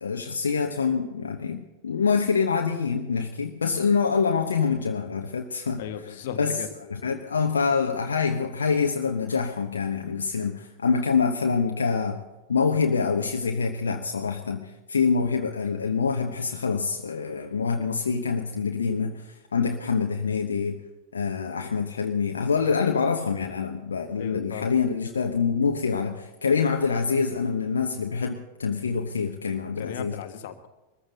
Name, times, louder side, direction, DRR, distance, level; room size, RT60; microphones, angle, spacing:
voice 1, 0.0-5.8 6.4-6.6 6.9-12.2 12.5-20.8 21.1-30.2, left 5 dB, 70° left, 4 dB, 1.0 m, -26 dB
voice 2, 5.8-6.7 24.2-24.7 29.8-30.7, left 9 dB, 55° left, 7 dB, 1.4 m, -36 dB
22.5 x 14.5 x 4.0 m, 1.1 s
figure-of-eight pair, 90°, 0 cm